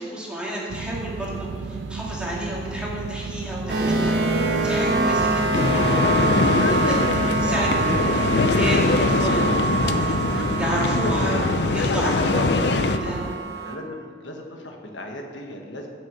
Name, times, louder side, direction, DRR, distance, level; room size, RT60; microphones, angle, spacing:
voice 1, 0.0-4.2 4.6-6.1 6.5-13.3, equal, 5° right, -5 dB, 2.1 m, -31 dB
sound 1, 0.7-13.4, right 4 dB, 90° right, 0.5 m, -33 dB
sound 2, 3.7-13.8, right 3 dB, 70° right, 1.2 m, -25 dB
sound 3, 5.5-13.0, left 3 dB, 65° left, 0.5 m, -22 dB
voice 2, 13.5-15.9, left 1 dB, 85° left, 1 dB, 1.5 m, -37 dB
9.1 x 6.4 x 7.8 m, 2.2 s
head